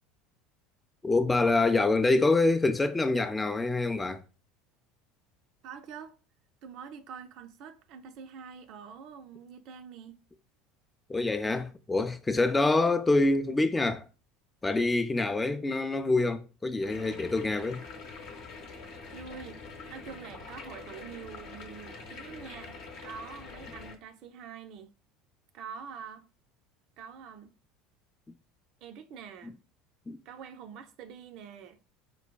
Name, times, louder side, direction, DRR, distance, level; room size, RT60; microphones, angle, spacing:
voice 1, 1.0-4.2 11.1-14.0 14.6-17.8 30.1-30.2, left 2 dB, 15° left, 0.3 m, -26 dB
voice 2, 5.6-6.1 6.6-10.2 19.1-19.6 19.9-24.9 25.5-26.3 27.0-27.5 28.8-29.6 30.3-31.8, right 7 dB, 55° right, 0.4 m, -45 dB
sound 1, 16.8-23.9, left 4 dB, 55° left, 0.7 m, -45 dB
4.6 x 2.2 x 2.2 m
figure-of-eight pair, 70°, 0 cm